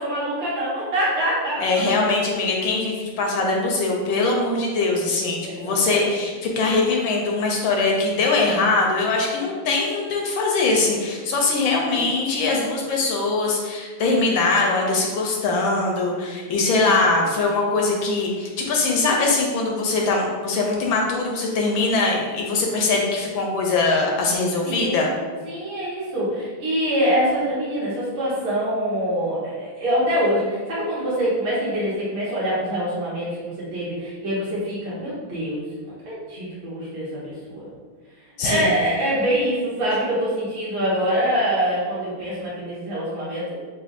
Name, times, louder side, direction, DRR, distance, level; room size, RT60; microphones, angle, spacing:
voice 1, 0.0-2.0 5.4-6.1 11.9-12.3 16.8-16.9 24.6-25.1 25.4-37.6 38.4-43.4, equal, 85° right, -8 dB, 2.4 m, -25 dB
voice 2, 1.6-25.1 38.4-38.7, left 3 dB, 70° left, 0 dB, 1.3 m, -22 dB
6.9 x 2.4 x 2.5 m, 1.5 s
omnidirectional pair, 2.4 m